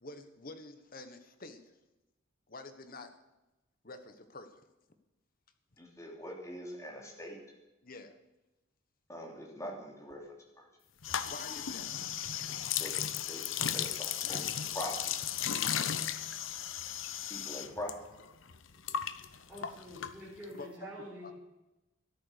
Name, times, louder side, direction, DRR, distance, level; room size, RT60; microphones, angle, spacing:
voice 1, 0.0-1.7 2.5-3.2 3.8-4.6 7.8-8.2 11.2-11.9 14.2-14.5 16.2-16.3 20.6-20.9 21.2-21.3, left 2 dB, 45° left, 8 dB, 1.4 m, -48 dB
voice 2, 5.8-7.4 9.1-10.3 10.6-10.7 12.8-13.4 13.7-14.4 14.7-15.2 17.3-17.9, equal, 15° left, 0 dB, 3.0 m, -42 dB
sound 1, 11.0-17.9 18.2-20.6, left 9 dB, 80° left, 0.8 m, -35 dB
voice 3, 19.5-21.3, equal, 5° right, -7 dB, 4.5 m, -47 dB
13.5 x 11.5 x 6.7 m, 1.0 s
head